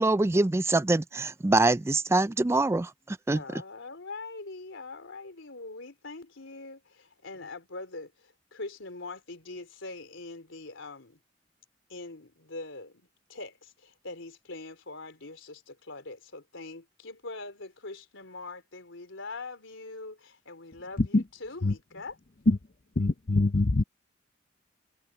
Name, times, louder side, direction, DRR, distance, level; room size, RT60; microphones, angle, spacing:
voice 1, 0.0-3.4, right 2 dB, 15° right, 0.3 m, -24 dB
voice 2, 3.3-11.2 11.9-22.2, left 3 dB, 90° left, 3.6 m, -43 dB
voice 3, 23.0-23.8, left 2 dB, 45° left, 0.7 m, -23 dB
head